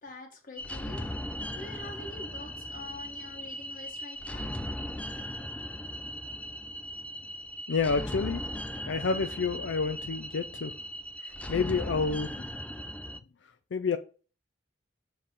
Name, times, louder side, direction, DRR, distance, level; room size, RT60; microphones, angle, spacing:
voice 1, 0.0-1.1 1.5-4.6, left 2 dB, 50° left, 1.5 m, -45 dB
sound 1, 0.6-13.2, equal, 10° left, 0.3 m, -38 dB
voice 2, 7.7-8.4 8.8-10.7 11.2-12.3 13.7-14.0, left 4 dB, 85° left, 0.5 m, -29 dB
7.6 x 3.3 x 4.3 m
head